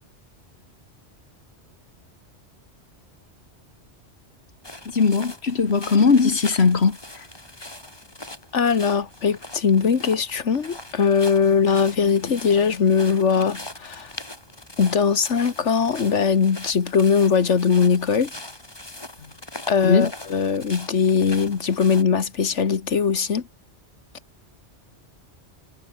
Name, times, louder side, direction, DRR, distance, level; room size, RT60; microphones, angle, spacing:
sound 1, 4.6-22.0, left 1 dB, 20° left, 2.7 m, -41 dB
voice 1, 4.9-7.2 19.8-20.1, left 5 dB, 65° left, 2.0 m, -19 dB
voice 2, 8.5-14.1 14.8-18.3 19.7-23.4, left 6 dB, 90° left, 1.8 m, -20 dB
omnidirectional pair, 1.2 m